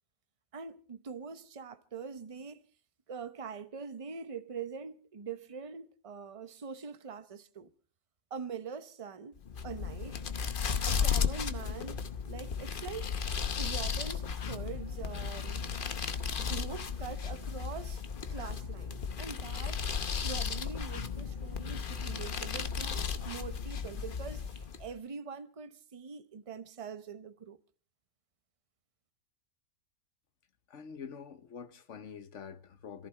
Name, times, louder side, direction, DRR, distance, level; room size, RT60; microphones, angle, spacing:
voice 1, 0.5-2.7 3.1-7.7 8.3-10.2 10.8-13.1 13.6-15.6 16.4-18.0 18.3-19.8 20.2-27.6, right 6 dB, 30° right, 0.7 m, -43 dB
sound 1, 9.4-24.9, left 6 dB, 40° left, 0.9 m, -35 dB
voice 2, 30.7-33.1, left 6 dB, 60° left, 1.2 m, -46 dB
27.0 x 14.5 x 3.3 m
omnidirectional pair, 1.5 m